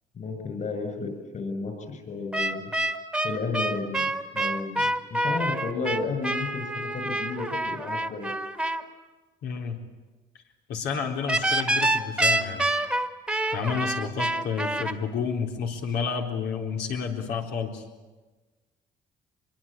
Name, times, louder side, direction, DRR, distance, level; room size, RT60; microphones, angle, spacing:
voice 1, 0.1-2.7 3.2-8.3, left 4 dB, 45° left, 7 dB, 6.8 m, -33 dB
sound 1, 2.3-8.8 11.3-14.9, right 1 dB, 5° right, 1.7 m, -27 dB
voice 2, 9.4-9.8 10.7-12.7 13.5-17.8, left 6 dB, 80° left, 2 dB, 4.0 m, -30 dB
25.0 x 22.5 x 8.9 m, 1.2 s
cardioid pair, 110°, 17 cm